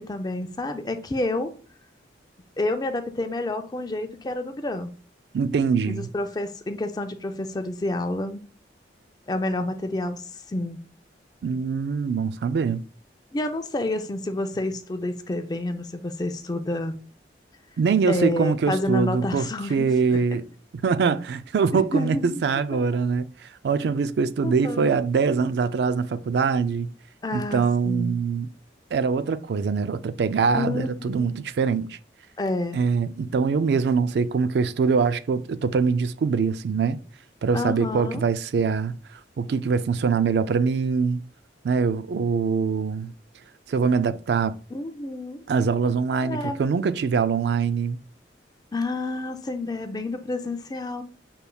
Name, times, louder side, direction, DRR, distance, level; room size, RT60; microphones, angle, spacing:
voice 1, 0.0-1.5 2.6-4.9 5.9-8.5 9.3-10.8 13.3-17.0 18.1-20.2 21.7-22.4 22.7-22.8 24.4-25.0 27.2-28.1 30.5-31.3 32.4-32.8 37.5-38.2 44.7-45.4 46.2-46.6 48.7-51.0, left 2 dB, 20° left, 0.4 m, -29 dB
voice 2, 5.3-6.1 11.4-12.8 17.8-20.5 20.8-26.9 27.3-28.5 28.9-32.0 32.7-37.0 37.4-39.0 39.4-41.2 41.6-43.1 43.7-44.5 45.5-48.0, right 5 dB, 65° right, 0.3 m, -23 dB
5.7 x 3.4 x 2.2 m
head